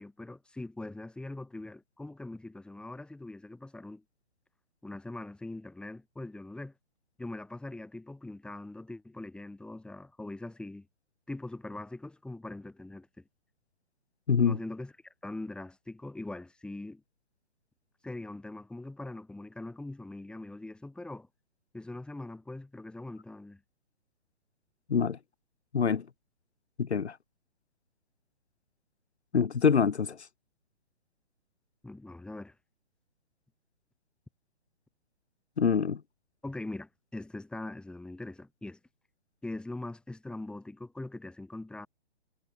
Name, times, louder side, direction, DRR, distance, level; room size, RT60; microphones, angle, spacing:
voice 1, 0.0-4.0 4.8-6.7 7.2-10.9 11.3-13.2 14.4-17.0 18.0-21.3 21.7-23.6 31.8-32.6 36.4-38.8 39.4-41.9, left 2 dB, 5° left, 4.1 m, -42 dB
voice 2, 25.7-26.0 26.8-27.2 29.3-30.2 35.6-36.0, left 6 dB, 80° left, 0.9 m, -25 dB
figure-of-eight pair, 130°, 33 cm